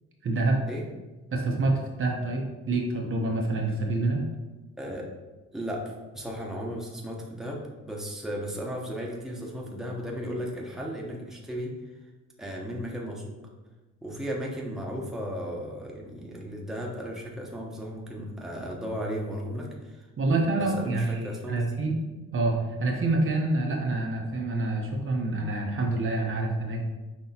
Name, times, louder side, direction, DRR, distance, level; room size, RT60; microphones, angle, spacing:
voice 1, 0.2-0.6 1.3-4.2 20.2-22.0 22.3-26.8, right 2 dB, 45° right, 1 dB, 0.8 m, -27 dB
voice 2, 4.8-5.1 5.5-11.7 12.4-13.2 14.0-20.0 20.3-21.6, equal, ahead, -2 dB, 0.9 m, -35 dB
5.8 x 3.0 x 2.8 m, 1.2 s
cardioid pair, 90°, 30 cm